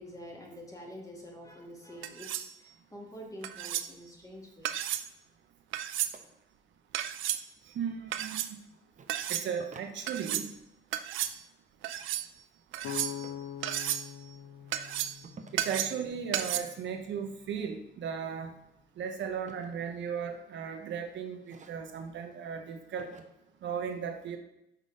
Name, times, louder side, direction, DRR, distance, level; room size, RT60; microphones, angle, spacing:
voice 1, 0.0-4.7, equal, 15° left, -1 dB, 1.8 m, -47 dB
sound 1, 2.0-2.5 3.4-3.9 4.6-5.1 5.7-6.1 6.9-7.4 8.1-8.5 9.1-9.5 10.1-10.5 10.9-11.3 11.8-12.3 12.7-13.3 13.6-14.1 14.7-15.2 15.6-16.0 16.3-16.6, right 12 dB, 85° right, 0.5 m, -33 dB
sound 2, 6.1-6.2 7.5-8.1 8.9-9.1 9.6-10.6 12.8-13.4 15.2-15.8 17.7-18.0 18.4-20.3 20.7-21.0 21.4-22.1 23.0-23.2, right 4 dB, 40° right, 0.8 m, -53 dB
voice 2, 7.7-8.6 9.3-10.5 15.5-18.5 19.0-23.1 23.6-24.4, right 7 dB, 65° right, 4 dB, 0.8 m, -36 dB
sound 3, 12.8-16.6, left 10 dB, 70° left, 0.7 m, -43 dB
5.5 x 3.7 x 4.9 m, 0.84 s
cardioid pair, 90°, 20 cm